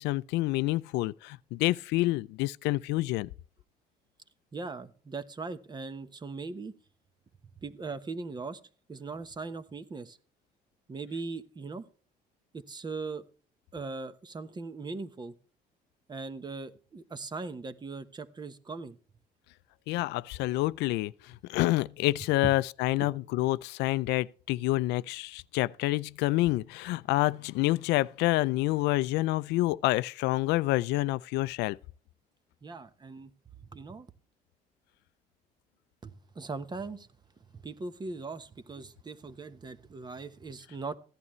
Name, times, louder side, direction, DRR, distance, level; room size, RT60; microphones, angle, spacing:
voice 1, 0.0-3.3 19.9-21.1 21.5-31.8, left 18 dB, 90° left, 0.5 m, -28 dB
voice 2, 4.5-6.7 7.6-8.6 8.9-10.2 10.9-11.9 12.5-13.3 13.7-15.3 16.1-19.0 22.4-22.5 23.0-23.1 32.6-33.3 33.7-34.1 36.0-37.1 37.5-40.9, right 4 dB, 25° right, 1.0 m, -39 dB
15.0 x 11.0 x 3.1 m
cardioid pair, 110°, 17 cm